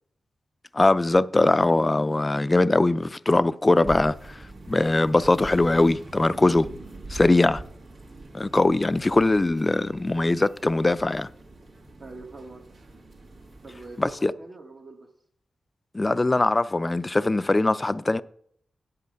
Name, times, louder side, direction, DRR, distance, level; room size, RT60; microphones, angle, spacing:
voice 1, 0.7-4.4 4.7-6.7 7.1-7.6 8.3-11.3 14.0-14.3 15.9-18.2, left 2 dB, 25° left, 0.4 m, -21 dB
Minneapolis Spring walk two, 3.8-14.2, right 2 dB, 80° right, 1.8 m, -43 dB
voice 2, 12.0-12.7 13.6-15.1, right 3 dB, 50° right, 1.1 m, -44 dB
8.2 x 7.4 x 5.2 m
cardioid pair, 65°, 0 cm